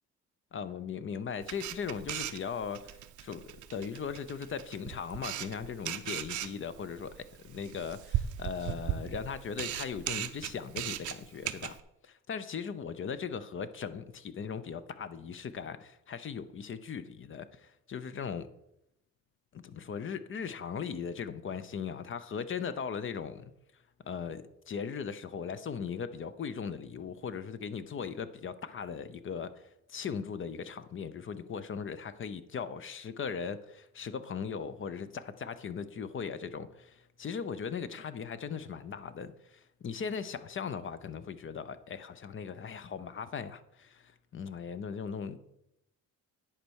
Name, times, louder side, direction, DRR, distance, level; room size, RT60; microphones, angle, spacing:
voice 1, 0.5-11.8 12.0-18.5 19.5-23.5 24.0-29.5 29.9-45.4, left 6 dB, 40° left, 0.7 m, -38 dB
Camera, 1.4-11.8, right 12 dB, 75° right, 0.7 m, -38 dB
10.0 x 4.4 x 6.3 m
cardioid pair, 90°, 30 cm